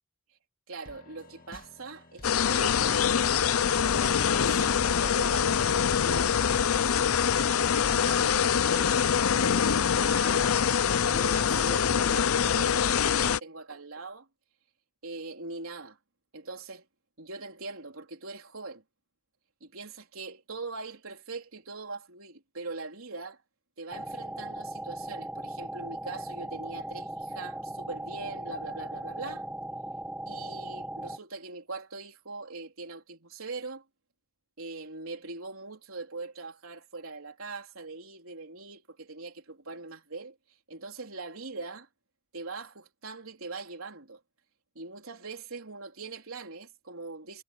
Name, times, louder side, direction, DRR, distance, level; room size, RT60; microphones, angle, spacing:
voice 1, 0.7-3.0 4.0-6.3 7.8-10.5 11.1-14.3 15.0-16.0 16.3-16.8 17.2-18.8 19.6-23.4 23.8-29.4 30.3-33.8 34.6-40.4 40.7-41.9 42.3-44.2 44.8-47.4, right 3 dB, 80° right, 3.9 m, -41 dB
sound 1, 0.9-11.5, left 2 dB, 40° left, 2.4 m, -53 dB
sound 2, 2.2-13.4, left 7 dB, 90° left, 0.6 m, -24 dB
sound 3, 23.9-31.2, right 1 dB, 5° right, 0.9 m, -38 dB
head